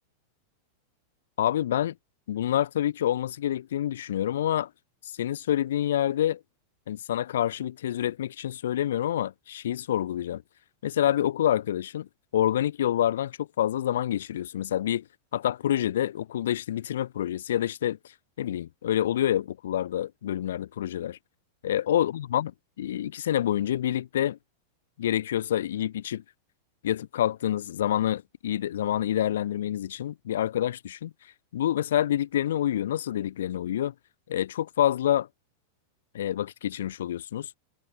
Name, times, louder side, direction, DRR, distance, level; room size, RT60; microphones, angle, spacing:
voice 1, 1.4-1.9 2.3-4.7 5.0-6.4 6.9-10.4 10.8-12.1 12.3-15.0 15.3-18.0 18.4-21.2 21.6-22.5 22.8-24.4 25.0-26.2 26.8-31.1 31.5-33.9 34.3-35.3 36.1-37.5, left 11 dB, 60° left, 0.5 m, -27 dB
figure-of-eight pair, 90°, 0 cm